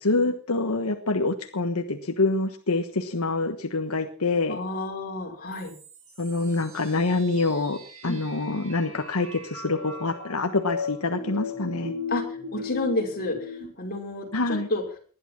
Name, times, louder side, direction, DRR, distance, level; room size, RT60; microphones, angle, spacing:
voice 1, 0.0-4.6 6.2-11.9 14.3-14.7, left 3 dB, 80° left, 6 dB, 1.4 m, -26 dB
voice 2, 4.5-5.7 8.0-8.2 12.1-12.2 12.5-13.5 13.8-14.8, left 2 dB, 45° left, 0 dB, 5.8 m, -30 dB
sound 1, 5.5-13.6, left 4 dB, 75° right, 5.6 m, -37 dB
20.0 x 11.5 x 5.9 m, 0.42 s
head